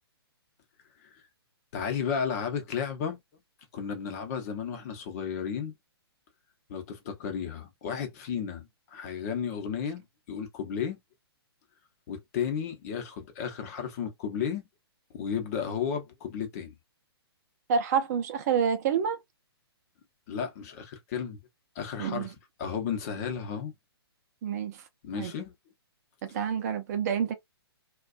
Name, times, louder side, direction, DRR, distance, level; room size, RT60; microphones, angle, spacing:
voice 1, 1.7-3.2 3.7-5.7 6.7-10.0 10.3-11.0 12.1-14.6 15.1-16.7 20.3-21.4 21.7-22.3 22.6-23.7 25.0-25.5, left 7 dB, 40° left, 0.8 m, -33 dB
voice 2, 17.7-19.2 22.0-22.3 24.4-24.8 25.1-25.3 26.3-27.3, right 7 dB, 40° right, 0.5 m, -28 dB
2.4 x 2.3 x 2.4 m
hypercardioid pair, 145°, 14 cm